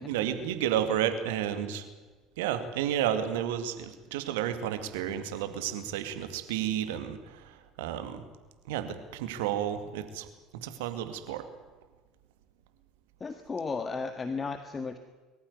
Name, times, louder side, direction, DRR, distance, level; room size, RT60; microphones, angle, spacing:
voice 1, 0.0-1.8 2.4-8.2 8.7-10.3 10.6-11.5, right 10 dB, 75° right, 9 dB, 2.2 m, -31 dB
voice 2, 13.2-15.0, left 4 dB, 25° left, 9 dB, 1.7 m, -35 dB
23.0 x 14.5 x 9.5 m, 1.3 s
hypercardioid pair, 70°, 0 cm